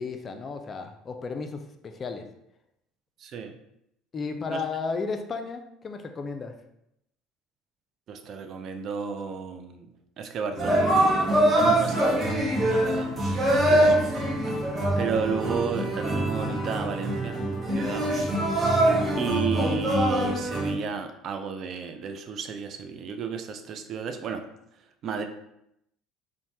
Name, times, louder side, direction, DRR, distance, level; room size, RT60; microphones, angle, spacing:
voice 1, 0.0-2.3 4.1-6.5 13.5-13.9, left 4 dB, 35° left, 6 dB, 0.3 m, -34 dB
voice 2, 3.2-3.6 4.5-4.6 8.1-9.9 10.2-12.4 12.7-14.1 14.5-14.6 15.0-17.4 17.7-18.1 19.2-24.4 25.0-25.3, right 6 dB, 50° right, 7 dB, 0.3 m, -33 dB
sound 1, 10.6-20.7, right 1 dB, 30° right, 0.8 m, -24 dB
3.1 x 2.1 x 2.7 m, 0.79 s
hypercardioid pair, 70°, 0 cm